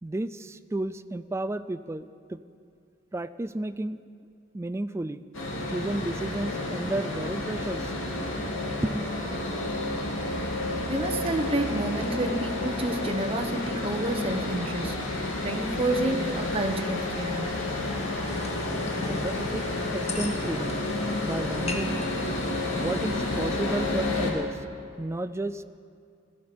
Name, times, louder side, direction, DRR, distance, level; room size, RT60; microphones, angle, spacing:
voice 1, 0.0-2.4 3.1-4.0 4.5-5.2 5.7-7.9 8.4-8.5 8.8-9.1 19.0-19.6 19.9-20.8 21.2-22.0 22.7-24.6 25.0-25.6, right 2 dB, 15° right, 12 dB, 0.3 m, -32 dB
sound 1, 5.3-24.3, left 2 dB, 90° left, 2.3 m, -30 dB
voice 2, 10.9-17.6, right 1 dB, 30° right, 5 dB, 1.0 m, -29 dB
sound 2, 18.3-23.5, left 2 dB, 35° left, 1.2 m, -39 dB
17.5 x 13.5 x 5.2 m, 2.4 s
head